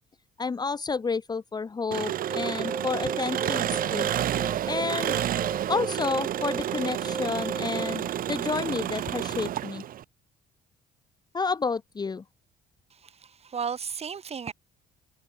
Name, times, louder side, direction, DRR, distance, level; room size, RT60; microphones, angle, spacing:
voice 1, 0.4-4.1 4.7-5.2 5.7-9.8 11.3-12.2, left 4 dB, 25° left, 1.2 m, -30 dB
Engine, 1.9-10.0, right 11 dB, 55° right, 1.4 m, -30 dB
sound 1, 2.1-8.1, right 4 dB, 20° right, 1.9 m, -36 dB
voice 2, 12.9-14.5, right 6 dB, 40° right, 6.5 m, -34 dB
cardioid pair, 110°, 17 cm